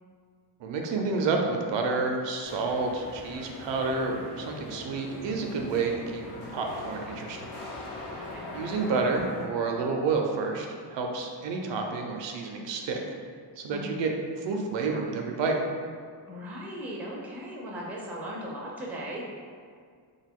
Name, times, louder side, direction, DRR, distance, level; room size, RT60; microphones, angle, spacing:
voice 1, 0.6-6.2 6.5-7.5 8.1-8.2 8.5-10.7 10.9-13.0 13.6-14.1 14.4-15.6, right 4 dB, 75° right, 2 dB, 0.5 m, -29 dB
sound 1, 2.4-9.5, left 2 dB, 70° left, 0.8 m, -41 dB
voice 2, 8.1-8.6 13.7-14.0 16.3-19.3, equal, 5° right, -3 dB, 0.4 m, -38 dB
2.5 x 2.3 x 3.5 m, 2.1 s
cardioid pair, 115°, 44 cm